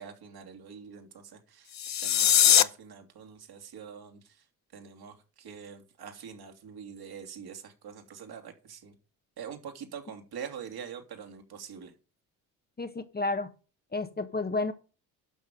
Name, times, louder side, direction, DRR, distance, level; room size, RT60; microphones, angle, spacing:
voice 1, 0.0-1.7 2.0-4.2 4.7-8.9 9.4-11.9, right 7 dB, 55° right, 3.0 m, -44 dB
sound 1, 1.7-2.6, left 10 dB, 35° left, 0.8 m, -21 dB
voice 2, 12.8-13.5 13.9-14.7, left 3 dB, 20° left, 1.3 m, -31 dB
12.0 x 6.2 x 5.2 m
hypercardioid pair, 60°, 46 cm